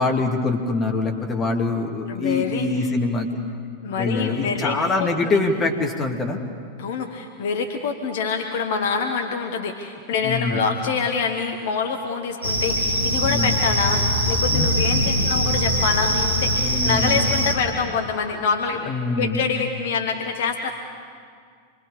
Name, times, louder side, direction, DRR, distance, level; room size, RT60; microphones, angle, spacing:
voice 1, 0.0-3.4 4.0-6.4 10.2-10.6 13.3-13.6 14.5-14.7 16.6-17.2 18.9-19.4, left 3 dB, 25° left, 2 dB, 2.4 m, -24 dB
voice 2, 2.1-2.9 3.8-5.4 6.8-20.7, left 5 dB, 55° left, 4 dB, 1.3 m, -26 dB
sound 1, 12.4-17.5, equal, 85° right, 2.2 m, -22 dB
27.5 x 22.0 x 5.1 m, 2.1 s
figure-of-eight pair, 90°, 0 cm